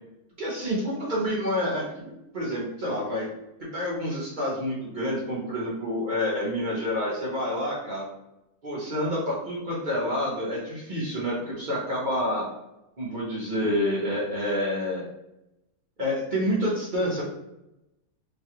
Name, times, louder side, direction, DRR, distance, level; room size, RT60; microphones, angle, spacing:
voice 1, 0.4-3.3 3.7-8.1 8.6-12.5 13.0-15.0 16.0-17.3, equal, 40° right, -6 dB, 0.8 m, -28 dB
3.2 x 2.3 x 2.8 m, 0.91 s
omnidirectional pair, 1.6 m